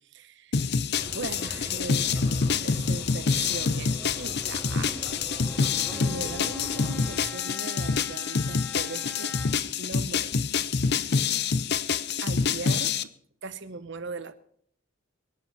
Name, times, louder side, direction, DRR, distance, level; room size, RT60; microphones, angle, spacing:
voice 1, 0.1-0.6 1.1-5.1 5.5-9.3 9.8-10.3 12.2-12.9 13.4-14.4, right 3 dB, 60° right, 1.0 m, -39 dB
sound 1, 0.5-13.0, left 5 dB, 55° left, 0.6 m, -27 dB
sound 2, 0.9-7.2, equal, 15° right, 5.8 m, -41 dB
Bowed string instrument, 5.4-9.8, left 4 dB, 10° left, 1.2 m, -43 dB
23.5 x 11.0 x 4.2 m
head